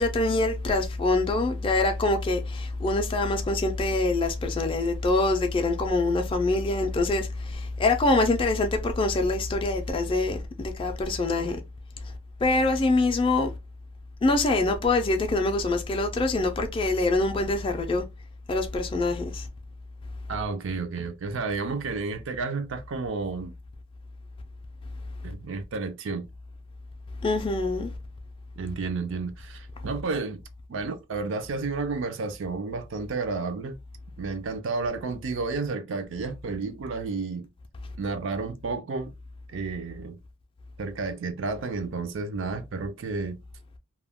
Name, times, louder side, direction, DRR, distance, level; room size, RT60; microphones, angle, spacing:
voice 1, 0.0-11.6 12.0-12.1 12.4-13.5 14.2-18.0 18.5-19.5 27.2-27.9, left 2 dB, 25° left, 0.3 m, -25 dB
voice 2, 20.3-23.5 25.2-26.3 28.6-30.4 30.7-33.8 34.2-37.5 38.0-39.1 39.5-40.2 40.8-43.4, right 4 dB, 65° right, 0.4 m, -31 dB
2.2 x 2.1 x 3.4 m
head